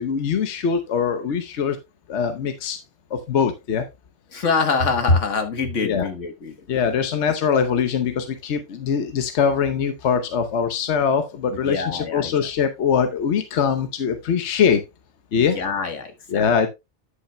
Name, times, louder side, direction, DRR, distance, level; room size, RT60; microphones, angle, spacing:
voice 1, 0.0-1.8 2.1-2.8 3.1-3.9 5.8-6.1 6.7-14.8 15.3-15.6 16.3-16.7, left 7 dB, 70° left, 1.1 m, -22 dB
voice 2, 4.3-6.6 11.5-12.3 15.3-16.5, left 3 dB, 85° left, 1.7 m, -24 dB
9.8 x 8.5 x 2.2 m
omnidirectional pair, 1.2 m